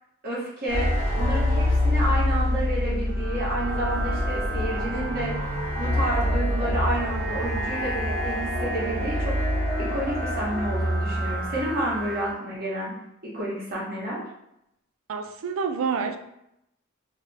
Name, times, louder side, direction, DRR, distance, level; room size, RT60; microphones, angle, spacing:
voice 1, 0.2-5.3 5.8-9.3 9.8-12.9 13.2-14.2, right 1 dB, 45° right, -7 dB, 1.2 m, -30 dB
sound 1, 0.7-12.3, left 1 dB, 65° left, 0.9 m, -26 dB
voice 2, 15.1-16.2, right 5 dB, 80° right, 7 dB, 0.3 m, -28 dB
2.5 x 2.3 x 3.2 m, 0.82 s
head